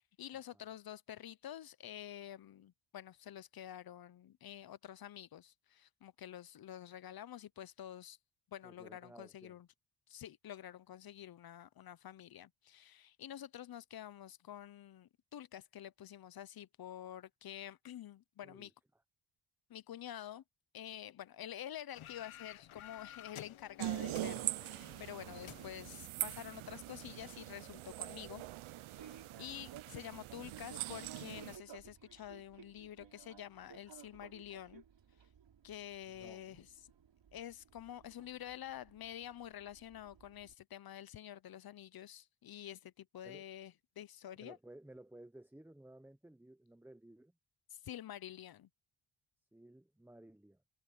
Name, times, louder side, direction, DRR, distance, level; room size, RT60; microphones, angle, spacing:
voice 1, 0.0-8.2 8.5-9.7 10.1-18.7 19.7-20.4 20.7-28.4 28.9-34.8 35.6-36.7 37.3-44.6 47.7-48.7, left 11 dB, 50° left, 0.6 m, -49 dB
voice 2, 8.6-9.6 18.4-18.7 36.1-36.6 38.2-38.3 43.2-43.4 44.4-47.3 49.5-50.6, right 1 dB, 5° right, 0.9 m, -56 dB
sound 1, 21.9-26.8, left 11 dB, 85° left, 1.3 m, -54 dB
sound 2, 23.8-31.6, right 17 dB, 85° right, 0.6 m, -43 dB
Fixed-wing aircraft airplane, 25.2-40.5, right 8 dB, 60° right, 4.5 m, -59 dB
wide cardioid pair, 135°, 48 cm